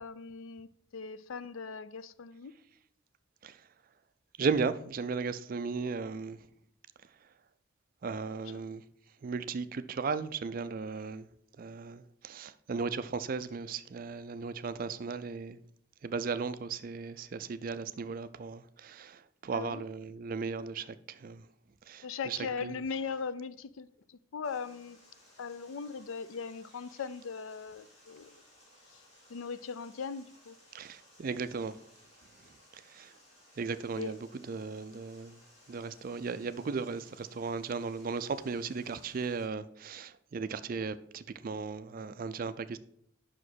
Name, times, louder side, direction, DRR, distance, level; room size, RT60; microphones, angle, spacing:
voice 1, 0.0-2.5 8.4-8.6 19.5-19.8 22.0-25.0 25.4-28.4 28.9-29.0 29.3-30.6 34.0-34.1, left 5 dB, 80° left, 0.4 m, -39 dB
voice 2, 4.4-6.4 8.0-8.8 9.2-11.3 11.6-15.6 16.0-21.4 21.9-22.7 30.7-31.7 32.9-33.1 33.6-34.2 34.5-35.4 35.7-42.8, right 5 dB, 45° right, 0.4 m, -36 dB
Water, 24.4-39.4, left 1 dB, 35° left, 3.1 m, -61 dB
5.8 x 4.9 x 6.2 m
head